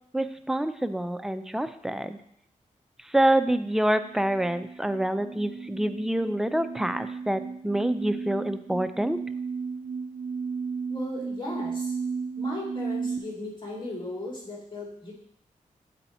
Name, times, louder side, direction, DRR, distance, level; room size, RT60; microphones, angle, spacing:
voice 1, 0.1-2.2 3.0-9.2, right 1 dB, 5° right, 10 dB, 0.4 m, -27 dB
sound 1, 4.0-13.2, right 5 dB, 55° right, 0.6 m, -34 dB
voice 2, 10.9-11.9 12.4-15.1, left 1 dB, 35° left, -3 dB, 2.6 m, -36 dB
7.9 x 4.3 x 4.2 m, 0.71 s
cardioid pair, 80°, 14 cm